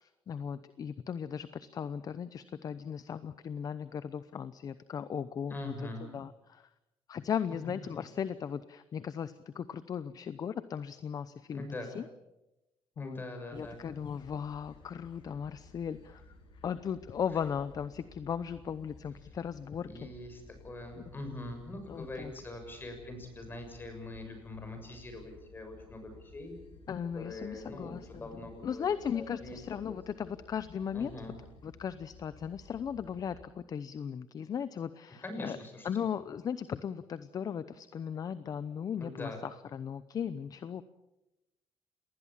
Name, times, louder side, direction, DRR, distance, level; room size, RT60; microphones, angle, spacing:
voice 1, 0.0-6.7 7.1-11.7 11.9-12.0 13.0-13.2 13.5-16.2 16.6-20.1 21.9-22.3 26.9-31.2 31.6-35.6 35.8-40.8, left 7 dB, 45° left, 14 dB, 0.8 m, -37 dB
voice 2, 5.5-6.1 11.5-11.9 13.0-13.8 19.7-26.5 27.1-28.8 29.1-29.6 29.9-30.3 30.9-31.4 35.2-35.9 39.0-39.4, left 1 dB, 25° left, 6 dB, 6.8 m, -43 dB
sound 1, 13.5-33.4, left 3 dB, 60° left, 6.7 m, -56 dB
27.5 x 20.0 x 7.5 m, 0.96 s
cardioid pair, 135°, 9 cm